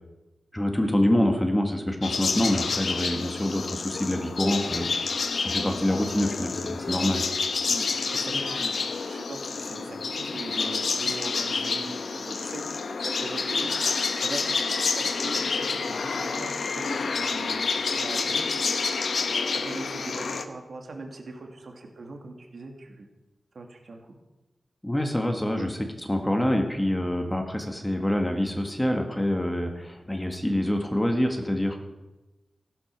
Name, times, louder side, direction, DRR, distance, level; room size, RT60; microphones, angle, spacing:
voice 1, 0.5-4.9 5.4-7.2 24.8-25.8 26.1-31.8, left 1 dB, 10° left, 4 dB, 1.7 m, -26 dB
sound 1, 2.0-20.4, left 4 dB, 70° left, 1.1 m, -29 dB
voice 2, 8.1-8.7 9.0-18.8 19.5-23.1 23.5-24.2 25.6-25.7, right 2 dB, 60° right, 3 dB, 2.4 m, -40 dB
15.5 x 12.0 x 6.1 m, 1.1 s
wide cardioid pair, 110°, 0 cm